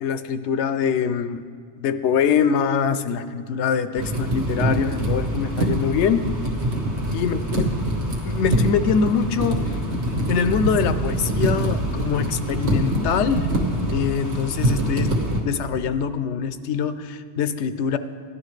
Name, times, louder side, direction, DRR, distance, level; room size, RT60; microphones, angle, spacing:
voice 1, 0.0-1.4 1.8-6.3 7.1-7.7 8.2-9.7 10.3-13.5 13.9-15.1 15.4-18.0, left 6 dB, 85° left, 11 dB, 0.9 m, -23 dB
sound 1, 3.9-15.4, right 1 dB, 75° right, 1.7 m, -24 dB
16.0 x 11.0 x 3.2 m, 2.1 s
omnidirectional pair, 1.1 m